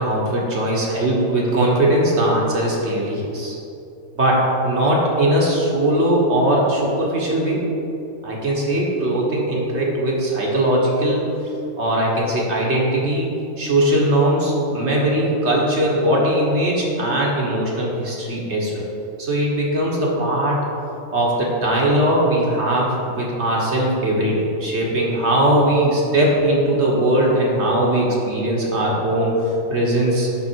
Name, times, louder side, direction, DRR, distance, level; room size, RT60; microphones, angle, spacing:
voice 1, 0.0-3.6 4.1-7.6 8.2-11.3 11.8-13.3 13.6-18.8 19.2-20.6 21.1-30.3, right 1 dB, 55° right, -3 dB, 1.5 m, -20 dB
11.5 x 3.8 x 4.5 m, 2.8 s
omnidirectional pair, 1.4 m